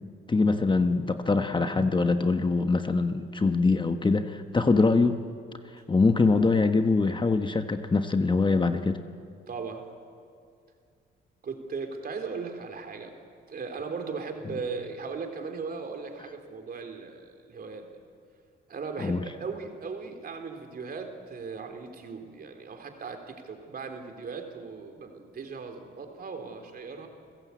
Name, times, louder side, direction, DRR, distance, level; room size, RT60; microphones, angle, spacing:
voice 1, 0.3-5.1 5.9-9.0 19.0-19.2, left 3 dB, 25° left, 7 dB, 1.2 m, -23 dB
voice 2, 9.5-9.8 11.4-13.1 13.5-17.8 18.7-27.1, right 4 dB, 50° right, 5 dB, 3.5 m, -38 dB
29.5 x 16.0 x 8.4 m, 2.2 s
cardioid pair, 90°, 20 cm